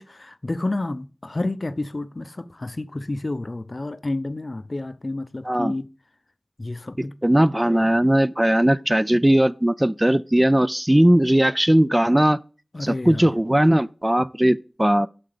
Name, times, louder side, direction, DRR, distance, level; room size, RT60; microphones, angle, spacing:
voice 1, 0.0-5.9 6.6-7.1 7.6-7.8 12.7-13.3, left 2 dB, 50° left, 0.6 m, -30 dB
voice 2, 7.2-12.4 12.8-15.1, right 1 dB, 15° right, 0.3 m, -18 dB
6.5 x 5.9 x 5.0 m
wide cardioid pair, 40°, 0 cm